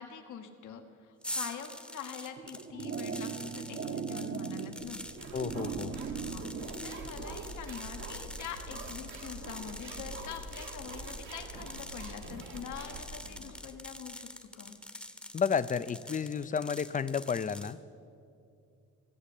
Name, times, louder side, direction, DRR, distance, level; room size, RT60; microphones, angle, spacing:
voice 1, 0.0-5.0 6.1-14.3 14.5-14.7, left 8 dB, 75° left, 6 dB, 1.4 m, -44 dB
sound 1, 1.2-17.7, left 1 dB, 5° left, 0.9 m, -45 dB
sound 2, 2.4-7.3, right 6 dB, 45° right, 1.0 m, -39 dB
sound 3, 4.8-13.6, right 2 dB, 80° right, 2.1 m, -44 dB
voice 2, 5.3-6.0 15.3-17.8, left 6 dB, 25° left, 16 dB, 0.5 m, -31 dB
16.5 x 7.5 x 8.4 m, 2.4 s
cardioid pair, 90°, 30 cm